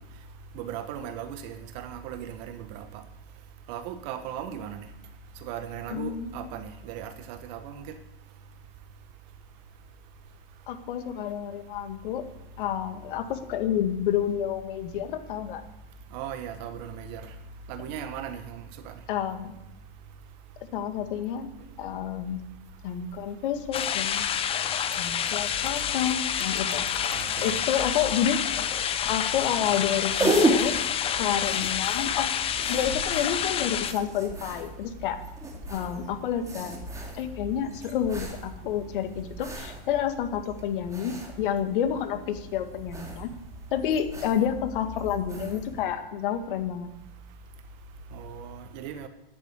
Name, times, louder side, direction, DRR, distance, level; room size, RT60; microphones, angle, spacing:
voice 1, 0.5-2.9 3.7-4.9 5.4-7.9 16.1-17.3 17.7-18.9 27.1-27.7 48.1-49.1, right 9 dB, 45° right, 9 dB, 1.5 m, -37 dB
voice 2, 5.9-6.3 10.7-12.2 12.6-15.6 19.1-19.6 20.7-21.5 21.8-22.4 22.8-24.3 25.0-26.8 27.4-28.4 29.1-30.7 31.1-32.3 32.7-35.2 35.7-36.8 37.1-43.3 43.7-46.9, left 9 dB, 60° left, 8 dB, 1.9 m, -29 dB
sound 1, 23.7-33.9, left 9 dB, 20° left, 0.7 m, -28 dB
sound 2, 29.8-45.8, right 1 dB, 10° right, 2.5 m, -34 dB
10.0 x 9.0 x 9.6 m, 0.91 s
hypercardioid pair, 125°, 30 cm